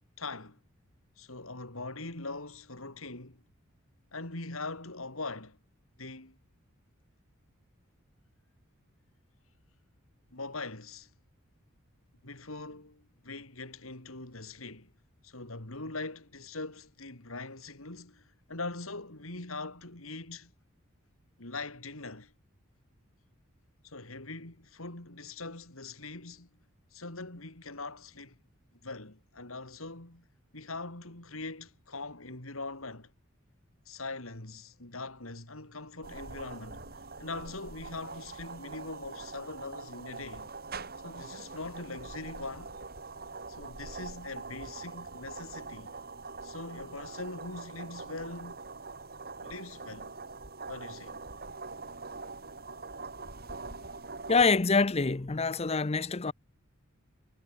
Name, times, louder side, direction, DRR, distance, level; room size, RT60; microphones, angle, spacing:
voice 1, 0.2-0.6 1.2-3.4 4.1-5.6 6.0-6.4 10.3-11.1 12.2-14.9 15.2-20.5 21.4-22.3 23.8-26.5 26.9-28.4 28.8-30.3 30.5-33.1 33.9-36.9 37.2-40.5 41.0-42.8 43.5-45.9 46.4-48.7 49.4-50.1 50.7-51.2, left 3 dB, 75° left, 4.1 m, -42 dB
sound 1, 36.0-54.5, right 3 dB, 45° right, 5.0 m, -44 dB
voice 2, 54.3-56.3, left 4 dB, 30° left, 0.7 m, -25 dB
head